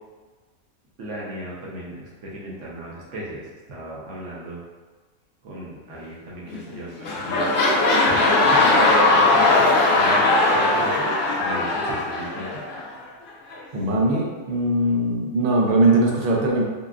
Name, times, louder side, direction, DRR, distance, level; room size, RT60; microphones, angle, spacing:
voice 1, 1.0-4.6 5.4-7.5 8.0-12.6, right 1 dB, 60° right, -5 dB, 1.0 m, -36 dB
sound 1, 6.5-6.7 7.0-12.8 13.5-13.6, left 2 dB, 75° left, 0.4 m, -19 dB
voice 2, 13.7-16.6, right 2 dB, 85° right, -2 dB, 0.4 m, -20 dB
3.6 x 2.4 x 2.3 m, 1.3 s
omnidirectional pair, 1.6 m